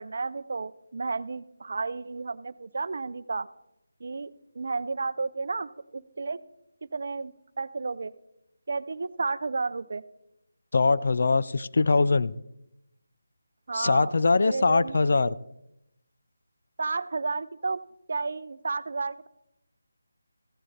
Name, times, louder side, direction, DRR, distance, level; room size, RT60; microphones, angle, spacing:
voice 1, 0.0-3.5 4.0-6.4 6.9-8.1 8.7-10.0 13.7-14.1 14.5-15.4 16.8-17.8 18.1-19.3, right 4 dB, 55° right, 0.5 m, -32 dB
voice 2, 10.7-12.3 13.7-15.4, left 3 dB, 55° left, 0.4 m, -22 dB
15.0 x 7.8 x 4.2 m
figure-of-eight pair, 165°, 0 cm